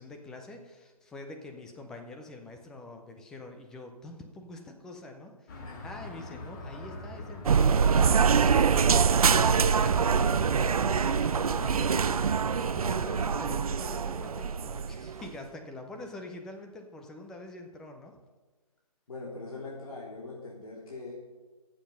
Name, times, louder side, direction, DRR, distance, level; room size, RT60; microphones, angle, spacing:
voice 1, 0.0-8.9 9.2-12.2 12.6-18.1, left 2 dB, 5° left, 4 dB, 0.4 m, -45 dB
sound 1, 5.5-13.4, left 2 dB, 30° left, 1.8 m, -44 dB
sound 2, 7.4-15.3, right 6 dB, 70° right, 0.6 m, -24 dB
voice 2, 19.1-21.1, left 3 dB, 65° left, -3 dB, 3.2 m, -42 dB
14.5 x 7.5 x 5.6 m, 1.3 s
figure-of-eight pair, 150°, 19 cm